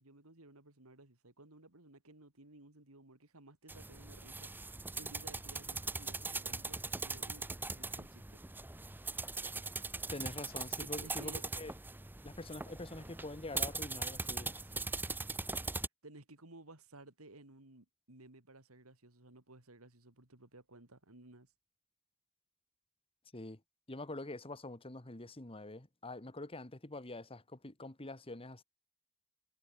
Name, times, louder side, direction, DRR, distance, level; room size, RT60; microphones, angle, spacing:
voice 1, 0.0-4.5 4.9-8.4 10.7-11.4 14.6-15.0 16.0-21.5, right 2 dB, 90° right, 3.7 m, -57 dB
sound 1, 3.7-15.9, right 3 dB, 10° right, 0.7 m, -41 dB
voice 2, 10.1-11.7 12.2-14.5 23.3-23.6 23.9-28.6, left 2 dB, 25° left, 1.6 m, -45 dB
head